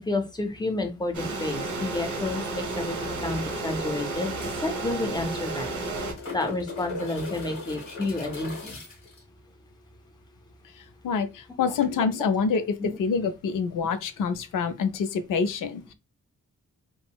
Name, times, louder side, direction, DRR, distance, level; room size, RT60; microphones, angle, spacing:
voice 1, 0.0-5.7 6.3-8.8 12.8-12.9, left 2 dB, 15° left, 0.5 m, -30 dB
sound 1, 1.1-6.1, right 3 dB, 70° right, 0.9 m, -32 dB
sound 2, 5.6-9.2 11.8-11.9, left 3 dB, 65° left, 1.5 m, -38 dB
voice 2, 11.0-12.6 13.0-15.9, left 5 dB, 85° left, 0.5 m, -26 dB
3.6 x 2.0 x 2.2 m
wide cardioid pair, 160°, 31 cm